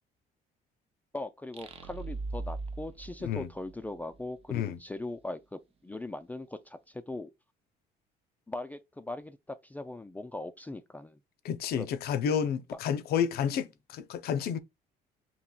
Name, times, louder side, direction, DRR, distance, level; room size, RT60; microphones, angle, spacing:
voice 1, 1.1-7.3 8.5-11.2 11.8-11.9 13.5-13.6, left 2 dB, 10° left, 0.3 m, -40 dB
sound 1, 1.5-4.2, right 3 dB, 35° right, 0.6 m, -39 dB
voice 2, 4.5-4.8 11.4-14.6, left 8 dB, 70° left, 0.5 m, -30 dB
5.6 x 2.9 x 2.3 m
cardioid pair, 110°, 17 cm